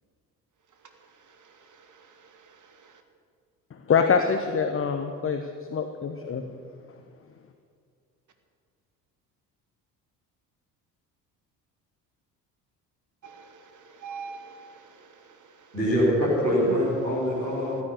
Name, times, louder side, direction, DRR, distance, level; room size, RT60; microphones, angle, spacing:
voice 1, 1.4-2.9 13.2-15.7, right 5 dB, 35° right, 6 dB, 2.1 m, -46 dB
voice 2, 3.9-6.4, left 6 dB, 25° left, 7 dB, 1.1 m, -25 dB
voice 3, 15.7-17.8, equal, 90° right, -9 dB, 4.2 m, -24 dB
15.5 x 9.4 x 9.7 m, 2.2 s
figure-of-eight pair, 50°, 49 cm